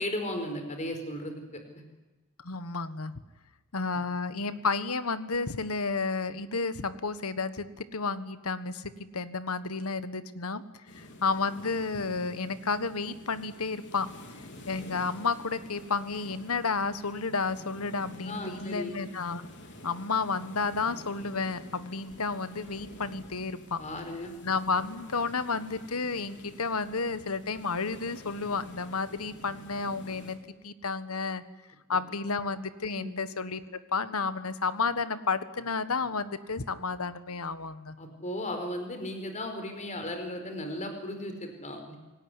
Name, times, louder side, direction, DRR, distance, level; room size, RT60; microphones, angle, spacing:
voice 1, 0.0-1.8 18.2-19.0 23.8-24.3 32.9-33.1 38.0-42.0, left 1 dB, 35° left, 6 dB, 4.7 m, -36 dB
voice 2, 2.4-3.1 3.7-10.6 10.9-14.1 14.7-19.5 19.8-23.8 24.4-30.4 30.6-31.4 31.9-33.6 33.9-37.9, left 4 dB, 75° left, 13 dB, 1.5 m, -31 dB
sound 1, 10.9-30.4, left 1 dB, 55° left, 3.8 m, -49 dB
26.5 x 19.0 x 9.9 m, 1.2 s
head